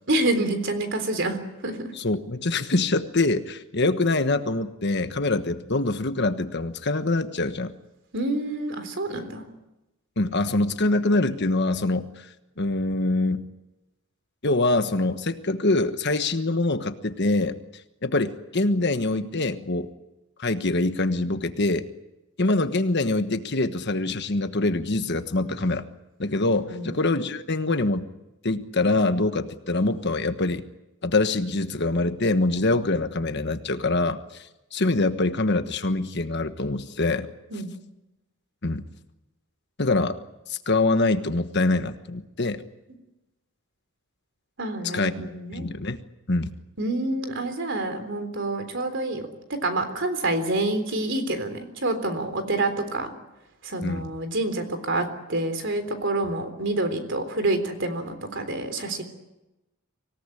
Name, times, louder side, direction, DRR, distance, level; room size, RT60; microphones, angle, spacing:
voice 1, 0.1-1.8 8.1-9.4 26.7-27.0 37.5-37.7 44.6-45.7 46.8-49.3 49.6-53.1 53.6-59.0, right 2 dB, 55° right, 8 dB, 3.7 m, -27 dB
voice 2, 1.9-7.7 10.2-12.3 12.6-13.4 14.4-17.6 18.0-19.9 20.4-21.9 22.4-25.8 26.2-28.1 28.4-30.6 31.0-37.3 38.6-38.8 39.8-40.2 40.5-42.6 44.9-46.0 46.3-46.5 53.8-54.1, left 2 dB, 50° left, 9 dB, 1.3 m, -24 dB
25.5 x 17.5 x 9.9 m, 0.98 s
head